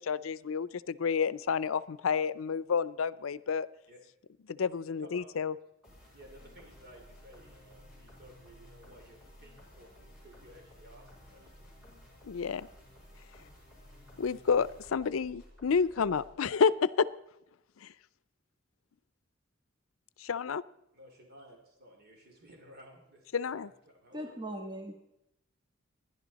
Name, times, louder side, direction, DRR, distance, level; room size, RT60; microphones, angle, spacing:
voice 1, 0.0-3.7 4.5-5.5 12.2-12.7 14.2-17.1 17.8-17.9 20.2-20.6 23.3-23.7, left 6 dB, 85° left, 17 dB, 0.5 m, -30 dB
sound 1, 5.8-16.3, left 1 dB, 5° right, 7.2 m, -55 dB
voice 2, 6.1-12.0 13.5-13.6 20.9-24.4, equal, 50° right, 2 dB, 2.8 m, -56 dB
voice 3, 24.1-24.9, right 1 dB, 20° right, 2 dB, 1.4 m, -39 dB
27.5 x 11.0 x 4.1 m, 0.85 s
head